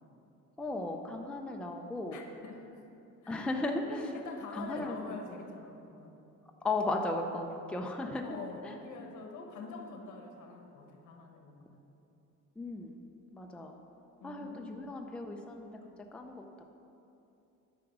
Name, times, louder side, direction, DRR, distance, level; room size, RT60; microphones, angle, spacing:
voice 1, 0.6-2.2 3.3-4.1 4.5-5.4 6.6-8.3 8.6-8.8 12.6-13.0 13.3-13.8 14.2-15.8 16.1-16.6, left 2 dB, 5° left, 2 dB, 0.5 m, -36 dB
voice 2, 2.1-2.7 3.2-3.4 4.1-6.2 8.2-11.8 14.2-14.9, left 4 dB, 75° left, 3 dB, 1.3 m, -45 dB
9.7 x 6.1 x 6.0 m, 2.8 s
cardioid pair, 150°, 30 cm